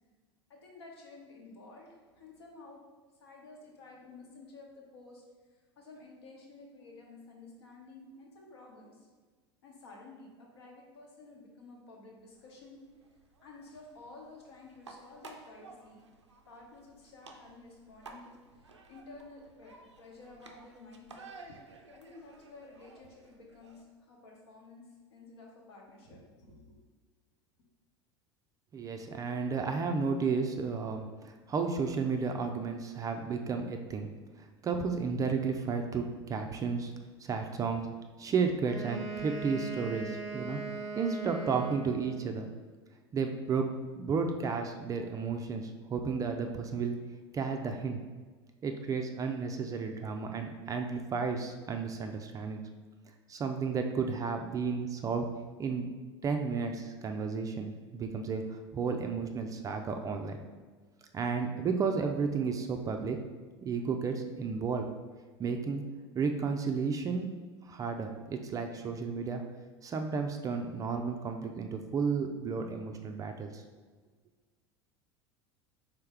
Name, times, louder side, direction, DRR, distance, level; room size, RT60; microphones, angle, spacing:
voice 1, 0.5-2.8 3.2-5.2 5.5-9.1 9.6-12.8 13.4-16.0 16.4-21.6 21.9-26.8, left 3 dB, 65° left, -1 dB, 1.0 m, -52 dB
sound 1, 12.3-23.8, right 3 dB, 85° right, 0.5 m, -55 dB
voice 2, 28.7-34.1 34.4-36.9 37.2-37.9 38.2-40.6 41.0-42.5 43.1-47.0 47.3-48.0 48.6-52.6 53.3-55.3 55.6-55.9 56.2-60.4 61.1-63.2 63.6-64.9 65.4-65.8 66.1-67.3 67.6-69.4 69.8-73.6, right 5 dB, 25° right, 5 dB, 0.4 m, -33 dB
Wind instrument woodwind instrument, 38.6-42.3, right 4 dB, 85° left, 1.0 m, -40 dB
4.4 x 3.4 x 3.3 m, 1.4 s
figure-of-eight pair, 75°, 15 cm